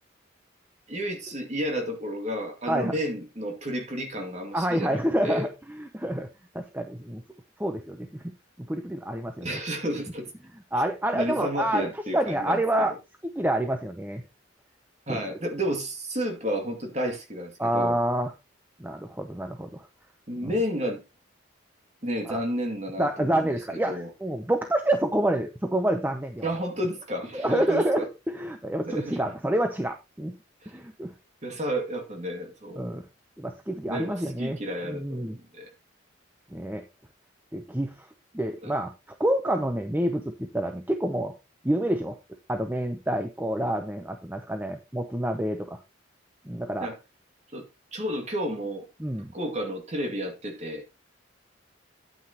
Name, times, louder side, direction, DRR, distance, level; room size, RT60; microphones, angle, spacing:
voice 1, 0.9-5.5 9.4-10.3 10.7-10.8 11.1-12.9 15.1-18.0 20.3-21.0 22.0-23.5 23.9-24.1 26.4-28.0 28.9-29.3 30.6-30.7 31.4-32.8 33.9-35.7 38.6-38.7 46.8-47.0 47.5-47.6 47.9-48.9 49.3-50.8, equal, 35° right, 2.3 m, -31 dB
voice 2, 4.5-6.3 6.5-7.2 7.6-8.2 8.6-9.6 10.7-11.8 12.1-12.9 13.4-14.2 15.1-15.2 17.6-18.3 18.8-19.9 20.4-20.5 22.3-22.4 23.0-26.5 27.3-30.3 30.7-31.1 32.8-33.0 33.4-34.6 34.9-35.4 36.5-36.8 37.5-38.1 38.3-38.9 39.2-41.3 41.6-42.2 42.5-45.8 46.5-46.9 49.0-49.3, right 1 dB, 10° right, 0.7 m, -28 dB
9.7 x 9.2 x 2.9 m
head